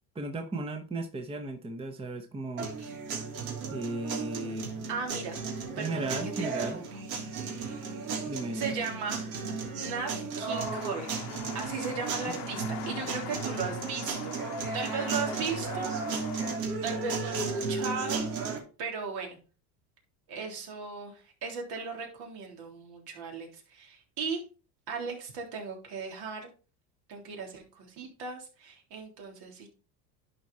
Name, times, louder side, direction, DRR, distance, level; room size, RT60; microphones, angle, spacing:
voice 1, 0.1-2.7 3.7-4.7 5.7-6.8 8.3-8.8, right 2 dB, 15° right, 0.9 m, -35 dB
sound 1, 2.6-18.6, right 4 dB, 90° right, 3.1 m, -35 dB
voice 2, 4.9-5.4 5.8-6.8 7.5-7.9 8.5-9.3 9.8-10.1 10.4-11.1 11.5-14.3 14.7-15.9 16.8-19.4 20.3-24.4 24.9-26.5 27.1-29.7, right 5 dB, 65° right, 3.5 m, -37 dB
sound 2, 10.5-16.6, left 13 dB, 55° left, 0.9 m, -43 dB
11.0 x 4.7 x 4.1 m
supercardioid pair, 120°, 43 cm